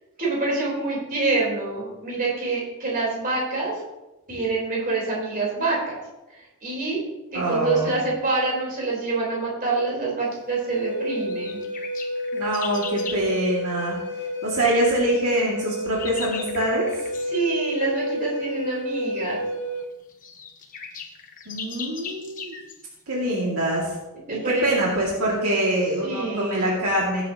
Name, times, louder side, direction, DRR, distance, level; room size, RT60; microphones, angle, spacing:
voice 1, 0.2-3.8 4.3-6.0 6.3-7.0 7.3-11.6 17.3-19.5 24.3-24.8 26.0-26.7, right 3 dB, 40° right, -4 dB, 4.0 m, -26 dB
voice 2, 7.3-7.9 12.3-14.0 14.4-17.0 21.5-22.6 23.1-23.9 24.3-27.2, right 1 dB, 75° right, -4 dB, 2.3 m, -24 dB
Wind instrument woodwind instrument, 10.6-19.9, equal, 55° left, 0.9 m, -30 dB
sound 1, 11.3-13.3 15.4-17.3 19.2-19.3 19.8-19.9 20.1-22.8, left 5 dB, 40° left, 1.2 m, -38 dB
16.5 x 8.7 x 2.9 m, 1.0 s
head